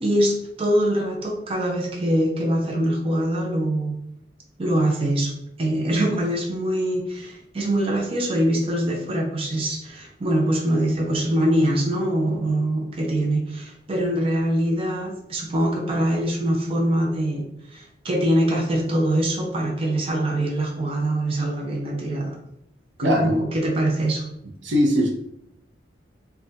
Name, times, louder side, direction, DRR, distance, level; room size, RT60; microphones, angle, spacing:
voice 1, 0.0-4.0 4.6-5.3 5.6-22.4 23.0-24.3, right 1 dB, 30° right, 0 dB, 0.5 m, -23 dB
voice 2, 23.0-23.3 24.6-25.1, equal, 75° right, 2 dB, 0.6 m, -20 dB
2.3 x 2.2 x 3.8 m, 0.74 s
head